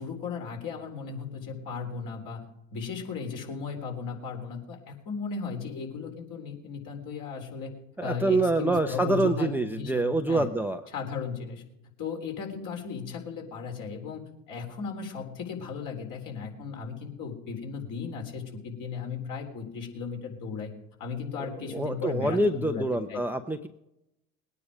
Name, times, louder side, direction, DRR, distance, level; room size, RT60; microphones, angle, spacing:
voice 1, 0.0-2.4 2.7-7.7 8.0-10.5 10.9-11.6 12.0-14.2 14.5-20.7 21.0-22.8 23.1-23.2, left 5 dB, 50° left, 1 dB, 4.0 m, -36 dB
voice 2, 8.0-10.8 21.7-23.7, right 2 dB, 5° right, 7 dB, 0.8 m, -26 dB
20.5 x 9.6 x 5.1 m, 0.85 s
hypercardioid pair, 75°, 41 cm